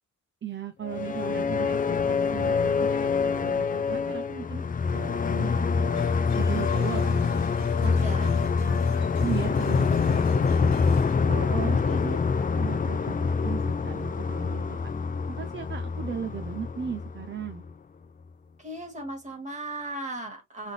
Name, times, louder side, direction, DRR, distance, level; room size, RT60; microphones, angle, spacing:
voice 1, 0.4-4.6 4.9-7.5 7.8-8.0 8.2-8.9 9.2-10.7 11.2-14.8 15.3-17.7, right 7 dB, 40° right, 0.6 m, -37 dB
sound 1, 0.8-17.7, left 5 dB, 30° left, 0.4 m, -26 dB
sound 2, 5.9-11.2, left 3 dB, 60° left, 1.7 m, -51 dB
voice 2, 7.9-8.3 11.8-12.0 18.6-20.7, right 2 dB, 25° right, 1.9 m, -37 dB
3.7 x 3.5 x 3.3 m
wide cardioid pair, 140°, 30 cm